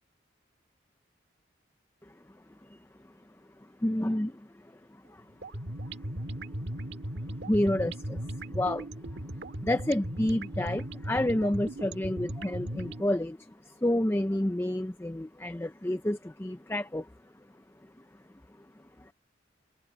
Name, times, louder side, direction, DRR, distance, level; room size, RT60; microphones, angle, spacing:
voice 1, 3.6-5.3 7.3-8.9 9.2-17.1 18.6-19.1, left 1 dB, 15° left, 0.5 m, -30 dB
sound 1, 5.4-13.1, right 1 dB, 60° right, 2.0 m, -37 dB
head